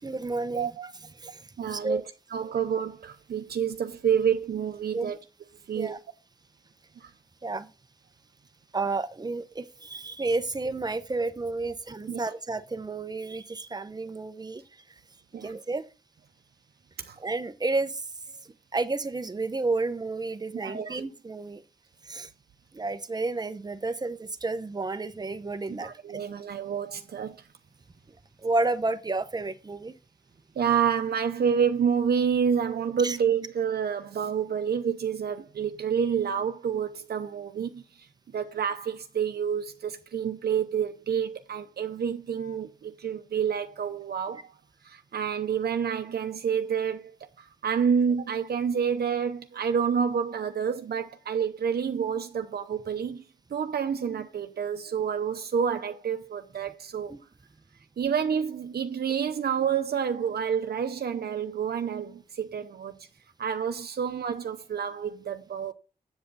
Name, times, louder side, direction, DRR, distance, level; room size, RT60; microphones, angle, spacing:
voice 1, 0.0-0.7 1.2-2.0 4.9-5.1 5.7-6.0 7.4-7.7 8.7-14.6 15.4-15.9 17.2-18.1 18.7-21.6 22.0-22.3 22.7-26.2 28.4-29.9 33.0-33.2 57.1-57.2, right 3 dB, 25° right, 0.7 m, -31 dB
voice 2, 0.6-0.9 1.6-2.0 2.3-5.2 5.7-6.0 7.0-7.1 12.1-12.2 15.3-15.5 17.0-17.2 20.6-21.0 25.8-27.4 30.6-37.8 38.3-44.5 44.8-53.2 53.5-57.1 58.0-62.9 63.4-65.7, right 7 dB, 85° right, 0.7 m, -28 dB
8.0 x 7.7 x 4.0 m
wide cardioid pair, 145°, 16 cm